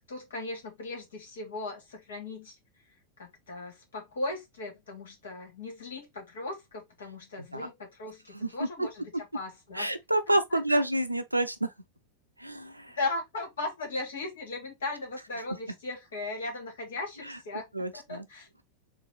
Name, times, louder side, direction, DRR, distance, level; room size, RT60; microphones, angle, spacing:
voice 1, 0.1-2.5 3.2-9.9 10.3-10.8 13.0-18.5, left 2 dB, 65° left, 1.9 m, -37 dB
voice 2, 8.3-8.9 9.7-11.7 12.4-13.0 17.3-17.4 17.7-18.3, right 1 dB, 85° right, 0.5 m, -29 dB
3.9 x 2.5 x 3.9 m
figure-of-eight pair, 90°, 0 cm